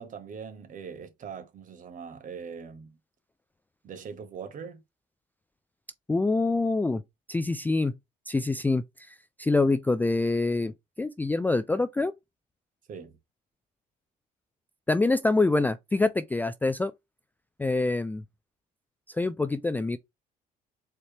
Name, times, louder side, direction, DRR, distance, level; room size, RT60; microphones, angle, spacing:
voice 1, 0.0-2.9 3.8-4.8 12.9-13.1, right 6 dB, 50° right, 1.3 m, -41 dB
voice 2, 6.1-7.0 7.3-8.0 8.3-10.7 11.0-12.1 14.9-16.9 17.6-18.2 19.1-20.0, left 3 dB, 10° left, 0.3 m, -25 dB
4.3 x 3.3 x 2.9 m
cardioid pair, 110°, 17 cm